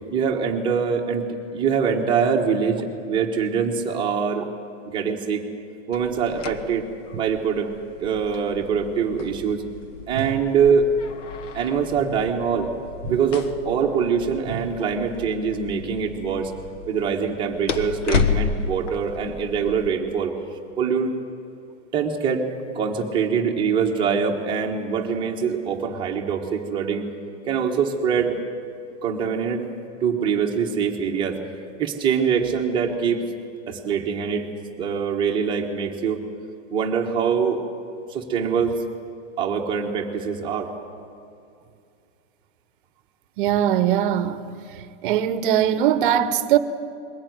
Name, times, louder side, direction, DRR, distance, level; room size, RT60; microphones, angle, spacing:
voice 1, 0.1-1.2 1.5-4.5 4.9-5.4 5.9-6.8 7.2-7.7 8.0-9.6 10.1-10.9 11.5-12.7 13.1-16.5 16.9-20.3 20.8-21.1 21.9-22.4 22.7-27.1 27.5-28.4 29.0-29.6 30.0-31.4 31.8-33.2 33.7-34.4 34.8-36.2 36.7-37.6 38.1-38.7 39.4-40.7, right 6 dB, 15° right, 1.3 m, -23 dB
sound 1, 5.9-19.9, left 6 dB, 75° left, 1.5 m, -32 dB
voice 2, 43.4-44.4 45.0-46.6, right 10 dB, 45° right, 1.0 m, -20 dB
21.5 x 16.0 x 9.4 m
supercardioid pair, 175°, 37 cm